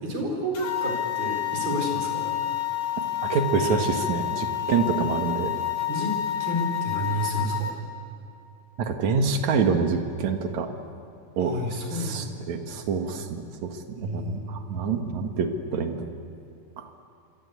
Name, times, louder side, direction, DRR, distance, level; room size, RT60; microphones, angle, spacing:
voice 1, 0.0-2.3 5.9-7.7 11.4-12.5 14.0-14.5, equal, 85° right, 2 dB, 6.4 m, -30 dB
sound 1, 0.5-7.7, left 12 dB, 60° left, 3.1 m, -29 dB
voice 2, 3.2-5.5 8.8-10.7 11.4-11.5 11.9-16.0 16.8-16.9, right 5 dB, 55° right, 5 dB, 2.8 m, -26 dB
27.0 x 24.5 x 8.4 m, 2.5 s
omnidirectional pair, 4.1 m